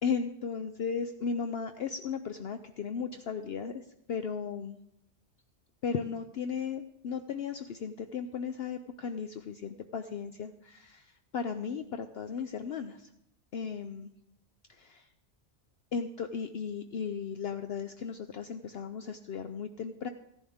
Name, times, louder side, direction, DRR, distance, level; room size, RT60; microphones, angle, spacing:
voice 1, 0.0-4.8 5.8-13.1 13.5-14.1 14.7-15.1 15.9-20.1, left 6 dB, 60° left, 8 dB, 0.8 m, -36 dB
15.5 x 11.0 x 3.6 m, 0.77 s
omnidirectional pair, 1.3 m